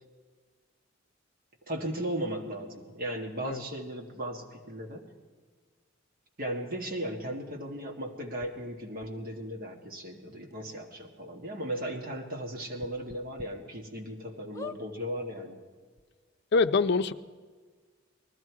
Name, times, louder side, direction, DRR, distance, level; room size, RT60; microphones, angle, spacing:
voice 1, 1.7-5.0 6.4-15.6, right 1 dB, 50° right, 2 dB, 2.0 m, -36 dB
sound 1, 8.4-8.5 9.0-9.1 10.1-10.2 10.5-10.6 11.0-11.1 12.8-13.5 14.0-14.1 14.5-14.8 15.7-15.8 15.9-16.0, left 3 dB, 15° left, 0.6 m, -42 dB
voice 2, 16.5-17.1, left 4 dB, 60° left, 11 dB, 0.6 m, -24 dB
20.0 x 13.5 x 4.8 m, 1.5 s
head